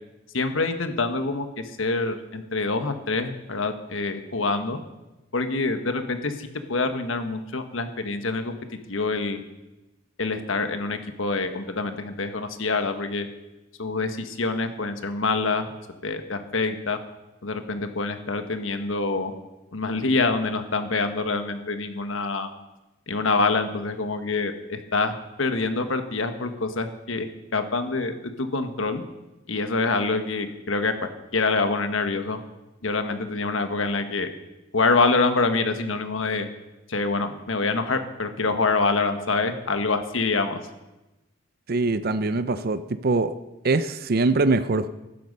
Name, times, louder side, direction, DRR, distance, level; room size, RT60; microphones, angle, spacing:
voice 1, 0.3-1.5 1.8-4.8 5.3-8.5 8.9-9.4 10.2-13.3 13.8-15.6 16.0-17.0 17.4-19.3 19.7-22.5 23.1-29.0 29.5-32.4 32.8-34.3 34.7-36.5 36.9-40.6, left 3 dB, 90° left, 8 dB, 1.4 m, -26 dB
voice 2, 41.7-43.3 43.6-44.9, right 3 dB, 50° right, 12 dB, 0.6 m, -23 dB
16.0 x 12.0 x 5.4 m, 1.0 s
head